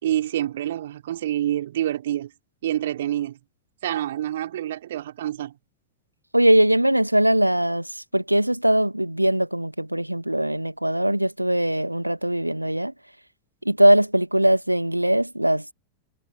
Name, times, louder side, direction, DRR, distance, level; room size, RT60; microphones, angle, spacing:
voice 1, 0.0-2.3 2.6-3.4 3.8-5.5, right 12 dB, 60° right, 4.4 m, -27 dB
voice 2, 6.3-12.9 13.6-15.7, right 1 dB, 90° right, 1.3 m, -21 dB
figure-of-eight pair, 90°, 0 cm